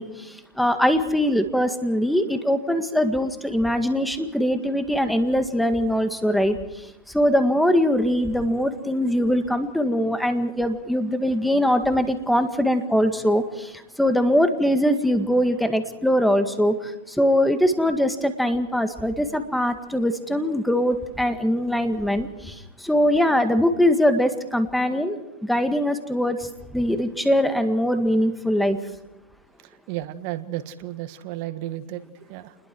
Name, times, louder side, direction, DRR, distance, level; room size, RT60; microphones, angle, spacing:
voice 1, 0.0-6.9 7.1-28.8, equal, ahead, 8 dB, 1.9 m, -22 dB
voice 2, 29.6-32.6, right 14 dB, 50° right, 10 dB, 1.6 m, -33 dB
28.5 x 21.5 x 4.7 m, 0.98 s
hypercardioid pair, 135°, 0 cm